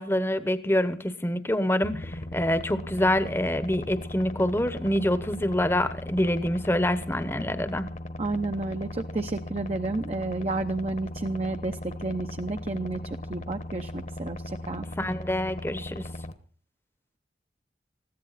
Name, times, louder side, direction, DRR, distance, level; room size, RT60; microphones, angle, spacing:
voice 1, 0.0-7.9 15.0-16.1, left 1 dB, 15° left, 12 dB, 1.0 m, -26 dB
sound 1, 1.8-16.3, left 1 dB, 45° left, 1.2 m, -38 dB
voice 2, 8.2-14.9, right 2 dB, 35° right, 6 dB, 0.8 m, -31 dB
21.0 x 15.5 x 4.1 m, 0.41 s
head